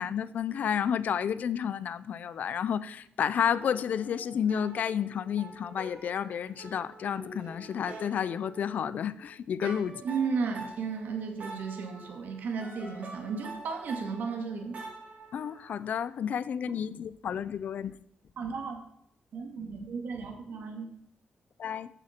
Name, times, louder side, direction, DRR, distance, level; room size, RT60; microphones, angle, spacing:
voice 1, 0.0-10.0 15.3-17.9 19.6-19.7 21.6-21.9, left 8 dB, 60° left, 0.6 m, -31 dB
sound 1, 3.4-9.3 9.6-15.9, right 2 dB, 50° right, 5.0 m, -47 dB
voice 2, 10.0-14.8 18.4-18.8 19.3-20.9, right 5 dB, 70° right, 2.2 m, -34 dB
14.5 x 8.9 x 4.5 m
wide cardioid pair, 175°, 3 cm